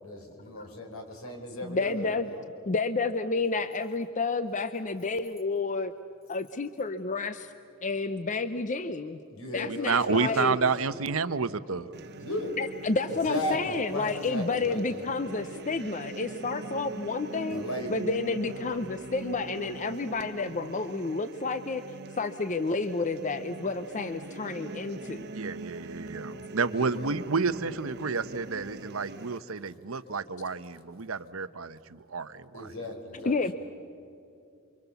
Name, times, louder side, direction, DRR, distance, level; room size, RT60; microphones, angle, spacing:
voice 1, 0.0-2.4 9.3-10.5 12.2-12.6 13.1-15.0 17.5-18.1 26.7-27.0 32.5-33.5, left 1 dB, 75° left, 3 dB, 4.7 m, -36 dB
voice 2, 1.6-2.3 2.7-5.9 6.3-7.5 7.8-9.2 9.5-10.6 12.6-17.6 17.9-21.8 22.2-25.3 33.2-33.5, left 3 dB, 35° left, 11 dB, 0.7 m, -30 dB
voice 3, 9.7-11.9 25.3-32.7, right 4 dB, 70° right, 13 dB, 0.9 m, -30 dB
sound 1, 11.9-29.4, right 2 dB, 50° right, 1.1 m, -42 dB
28.5 x 24.5 x 7.0 m, 2.7 s
head